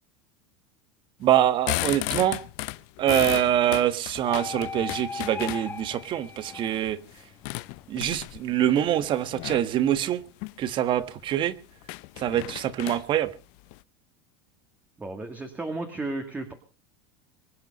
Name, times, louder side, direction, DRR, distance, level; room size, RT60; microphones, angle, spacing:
voice 1, 1.2-2.4 3.0-7.0 7.9-10.2 10.6-11.5 12.2-13.3, right 11 dB, 40° right, 1.5 m, -24 dB
sound 1, 1.4-6.0 6.5-8.5 9.3-9.7 10.2-10.6 11.0-11.1 11.3-11.4 11.8-13.8, left 22 dB, 60° left, 0.7 m, -34 dB
sound 2, 4.3-7.1 7.6-10.0, left 5 dB, 15° left, 1.7 m, -39 dB
voice 2, 15.0-16.5, right 2 dB, 10° right, 2.1 m, -33 dB
24.0 x 9.5 x 5.4 m
supercardioid pair, 140°, 13 cm